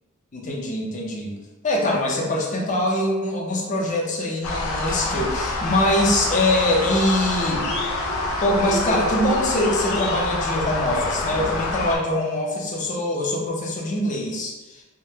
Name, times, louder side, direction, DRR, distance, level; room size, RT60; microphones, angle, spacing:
voice 1, 0.3-1.3 1.6-7.7 8.4-14.8, left 1 dB, 40° left, -2 dB, 0.6 m, -23 dB
sound 1, 4.4-12.0, left 2 dB, 85° left, 0.4 m, -26 dB
3.5 x 2.1 x 2.8 m, 1.1 s
head